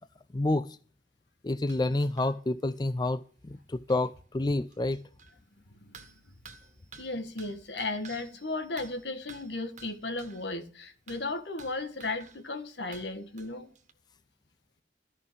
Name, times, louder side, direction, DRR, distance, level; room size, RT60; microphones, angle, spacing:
voice 1, 0.3-0.7 1.4-5.0, left 2 dB, 25° left, 0.4 m, -29 dB
sound 1, 1.5-2.4 2.7-2.8 3.0-3.1 3.5-3.6 3.9-4.1 4.7-5.4 5.9-10.6 11.1-12.5 12.9-13.9, right 5 dB, 45° right, 1.5 m, -53 dB
voice 2, 6.9-13.7, left 2 dB, 75° left, 1.6 m, -35 dB
13.5 x 5.6 x 7.9 m
head